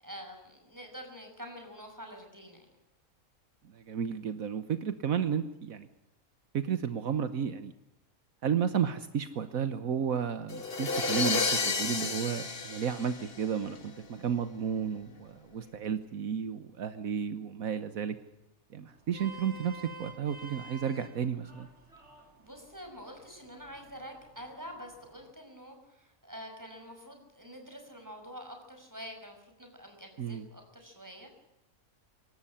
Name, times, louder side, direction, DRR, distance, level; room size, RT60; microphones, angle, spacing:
voice 1, 0.0-2.7 22.4-31.3, equal, 10° right, 3 dB, 6.0 m, -47 dB
voice 2, 3.7-5.9 6.5-7.7 8.4-18.2 18.7-21.7 30.2-30.5, right 7 dB, 75° right, 11 dB, 1.5 m, -32 dB
sound 1, 10.5-13.8, left 4 dB, 45° left, 1.8 m, -31 dB
Vehicle horn car horn honking, 18.9-25.3, right 2 dB, 50° right, 4.5 m, -51 dB
26.0 x 13.5 x 10.0 m, 0.93 s
omnidirectional pair, 1.5 m